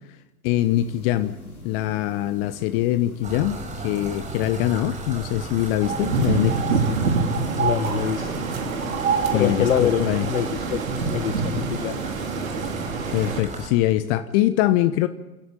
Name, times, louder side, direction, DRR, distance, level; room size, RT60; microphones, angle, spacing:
voice 1, 0.4-1.3 1.6-6.8 9.3-10.3 13.1-15.1, left 14 dB, 40° left, 12 dB, 1.2 m, -23 dB
sound 1, 0.5-9.2, left 1 dB, 80° left, 5.1 m, -42 dB
sound 2, 3.2-13.7, right 2 dB, 15° right, 5.5 m, -36 dB
sound 3, 5.8-13.4, right 4 dB, 70° right, 3.9 m, -26 dB
voice 2, 7.6-8.3 9.3-10.8 11.1-12.0, left 9 dB, 65° left, 13 dB, 1.8 m, -25 dB
28.5 x 14.0 x 9.2 m, 1.0 s
figure-of-eight pair, 100°, 43 cm